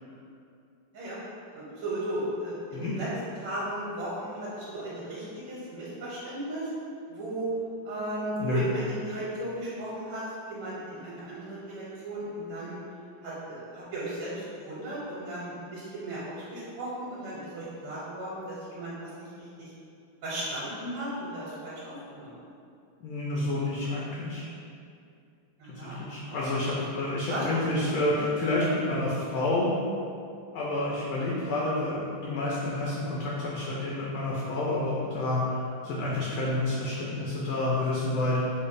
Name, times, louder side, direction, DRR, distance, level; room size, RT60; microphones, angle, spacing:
voice 1, 1.5-3.1 3.4-6.7 7.1-7.5 7.8-12.8 13.2-19.3 19.6-19.7 20.2-22.4 25.6-26.4 27.3-27.4 28.1-28.2, right 1 dB, 80° right, -8 dB, 1.6 m, -36 dB
voice 2, 23.0-24.4 25.8-29.7 30.5-38.4, left 2 dB, 75° left, -6 dB, 1.2 m, -29 dB
5.0 x 2.2 x 2.5 m, 2.5 s
omnidirectional pair, 2.4 m